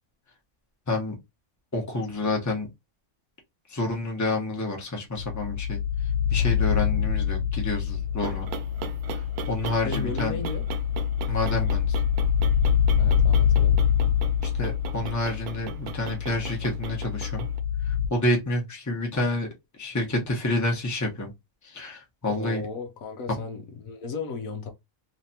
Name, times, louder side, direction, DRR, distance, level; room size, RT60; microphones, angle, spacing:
voice 1, 1.7-2.7 3.7-8.5 9.1-10.4 11.3-11.9 14.4-17.5 17.8-19.5 19.8-21.3 21.6-22.6, left 2 dB, 15° left, 0.9 m, -29 dB
sound 1, 5.1-18.1, left 8 dB, 55° left, 1.4 m, -25 dB
sound 2, 7.9-17.6, right 11 dB, 90° right, 1.1 m, -39 dB
voice 2, 9.8-10.6 13.0-13.8 22.3-24.7, left 4 dB, 70° left, 1.1 m, -35 dB
3.3 x 3.2 x 2.7 m
omnidirectional pair, 1.6 m